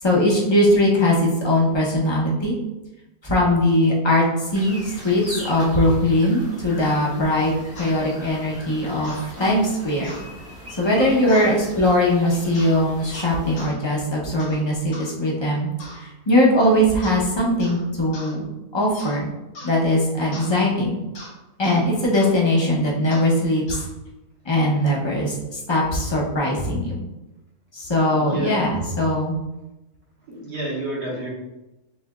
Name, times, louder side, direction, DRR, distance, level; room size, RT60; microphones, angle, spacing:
voice 1, 0.0-1.2 1.4-2.5 3.2-4.2 4.5-10.1 10.8-15.7 15.9-18.4 18.7-19.3 19.6-21.0 21.6-23.8 24.4-27.0 27.7-29.4, left 1 dB, 25° left, -4 dB, 0.6 m, -20 dB
sound 1, 4.5-13.7, equal, 15° right, 0.7 m, -39 dB
sound 2, 7.8-7.9 9.0-9.3 10.0-10.3 11.3-11.5 12.5-12.8 13.1-13.8 14.4-14.6 14.9-15.1 15.8-16.1 17.0-17.3 17.6-17.8 18.1-18.3 18.9-19.2 19.6-19.8 20.3-20.5 21.2-21.3 21.6-21.8 22.1-22.3 23.1-23.3 23.7-23.9, left 2 dB, 85° left, 1.7 m, -40 dB
voice 2, 28.1-28.6 30.3-31.3, right 1 dB, 80° right, -7 dB, 2.1 m, -29 dB
6.5 x 2.8 x 2.4 m, 1.0 s
omnidirectional pair, 1.7 m